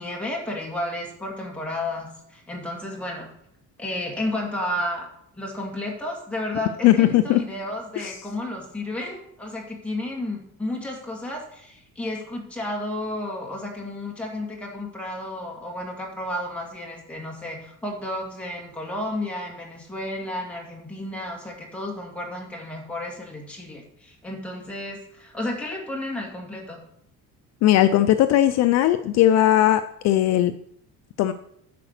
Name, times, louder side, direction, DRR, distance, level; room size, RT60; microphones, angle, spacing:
voice 1, 0.0-3.3 3.8-5.1 5.4-26.8, left 1 dB, 5° left, -2 dB, 2.1 m, -32 dB
voice 2, 6.8-7.4 8.0-8.1 27.6-30.5 31.2-31.3, left 13 dB, 50° left, 10 dB, 0.5 m, -18 dB
10.0 x 5.0 x 6.6 m, 0.72 s
cardioid pair, 175°, 34 cm